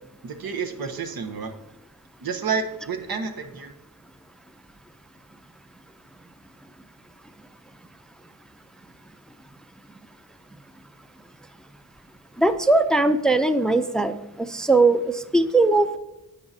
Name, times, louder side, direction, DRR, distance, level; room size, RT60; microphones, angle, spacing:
voice 1, 0.2-1.5 2.2-3.7, right 5 dB, 90° right, 6 dB, 0.9 m, -30 dB
voice 2, 12.4-14.1 14.4-16.0, right 2 dB, ahead, 10 dB, 0.4 m, -20 dB
11.0 x 8.6 x 2.7 m, 0.90 s
wide cardioid pair, 105°, 35 cm